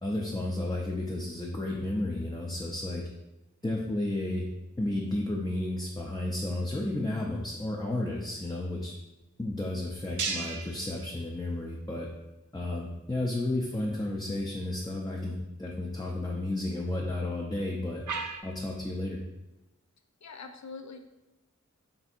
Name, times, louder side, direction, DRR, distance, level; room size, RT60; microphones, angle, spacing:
voice 1, 0.0-3.1 3.6-4.4 4.8-8.9 9.4-12.1 12.5-18.0 18.4-19.2, left 1 dB, 15° left, -2 dB, 0.5 m, -32 dB
sound 1, 3.6-18.4, right 4 dB, 85° right, 0.5 m, -44 dB
voice 2, 20.2-21.0, left 4 dB, 70° left, 7 dB, 0.4 m, -43 dB
3.4 x 2.6 x 4.2 m, 1.0 s
wide cardioid pair, 50°, 30 cm